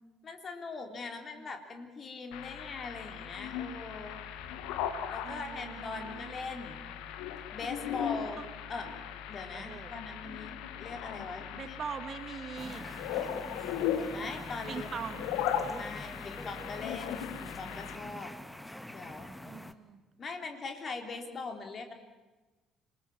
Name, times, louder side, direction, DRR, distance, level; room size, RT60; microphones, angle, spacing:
voice 1, 0.2-4.2 5.1-6.9 7.5-8.9 9.3-11.8 14.1-15.2 15.7-18.4 18.9-19.4 20.2-21.9, left 4 dB, 40° left, 4 dB, 3.5 m, -41 dB
sound 1, 2.3-18.0, left 9 dB, 60° left, 1.4 m, -38 dB
voice 2, 5.2-6.3 8.4-8.5 9.5-10.0 11.6-12.8 14.7-15.2 19.4-20.0, right 7 dB, 40° right, 11 dB, 1.6 m, -42 dB
sound 2, 12.6-19.7, left 1 dB, 5° left, 1.4 m, -45 dB
27.0 x 19.5 x 7.3 m, 1.2 s
figure-of-eight pair, 50°, 0 cm